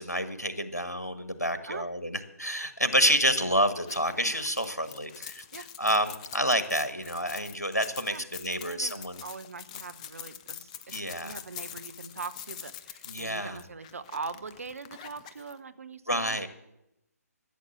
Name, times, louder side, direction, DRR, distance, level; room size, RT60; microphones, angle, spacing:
voice 1, 0.0-5.4 5.8-9.2 10.9-11.4 13.1-13.6 16.1-16.5, equal, 90° left, 11 dB, 1.3 m, -28 dB
sound 1, 3.8-15.5, left 10 dB, 25° left, 0.5 m, -45 dB
voice 2, 8.6-16.5, right 4 dB, 60° right, 12 dB, 0.9 m, -42 dB
13.5 x 7.1 x 7.8 m, 0.85 s
figure-of-eight pair, 135°, 9 cm